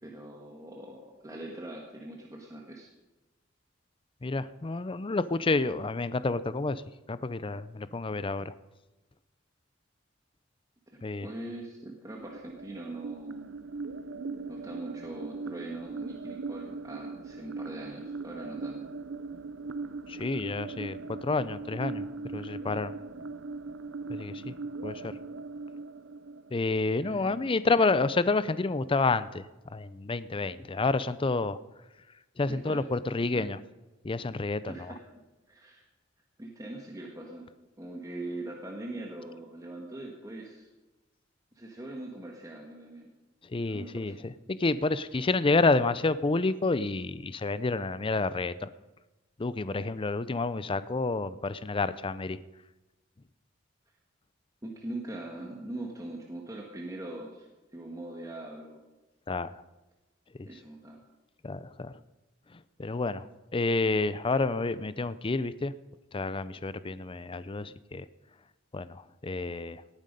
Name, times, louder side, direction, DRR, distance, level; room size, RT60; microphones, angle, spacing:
voice 1, 0.0-2.9 10.9-13.4 14.5-18.8 27.0-27.6 32.5-32.8 33.2-33.5 34.7-35.0 35.5-35.8 36.4-37.5 37.8-40.7 41.5-43.1 43.6-44.2 54.6-57.5 57.7-58.8 60.5-61.0, right 1 dB, 20° right, 0 dB, 1.5 m, -42 dB
voice 2, 4.2-6.8 7.1-8.5 11.0-11.3 20.1-22.1 22.3-22.9 24.1-24.5 24.8-25.1 26.5-29.4 29.7-31.6 32.4-33.6 34.0-34.7 43.5-48.7 49.4-52.4 59.3-59.5 60.4-60.5 61.4-61.9 62.8-63.3 63.5-65.7 66.1-68.1 68.7-69.8, left 3 dB, 25° left, 15 dB, 0.5 m, -29 dB
sound 1, 12.2-27.2, right 3 dB, 90° right, 0.7 m, -40 dB
18.0 x 9.6 x 5.2 m, 1.1 s
head